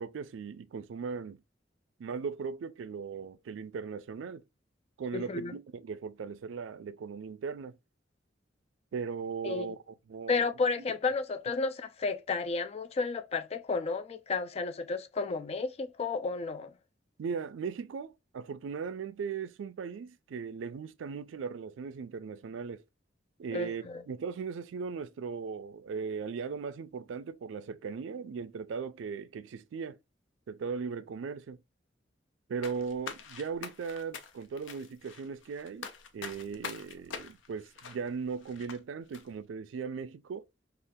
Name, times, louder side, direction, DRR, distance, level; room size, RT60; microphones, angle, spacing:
voice 1, 0.0-1.4 2.0-4.4 5.0-7.8 8.9-10.5 10.8-10.9 17.2-22.8 23.4-30.0 30.5-31.6 32.5-35.9 36.1-40.4, right 5 dB, 80° right, 0.4 m, -38 dB
voice 2, 5.1-5.6 9.4-9.7 10.3-16.7 23.5-24.0, left 4 dB, 35° left, 0.3 m, -32 dB
sound 1, 32.6-38.8 39.1-39.2, left 6 dB, 85° left, 0.5 m, -44 dB
3.6 x 2.3 x 2.6 m
head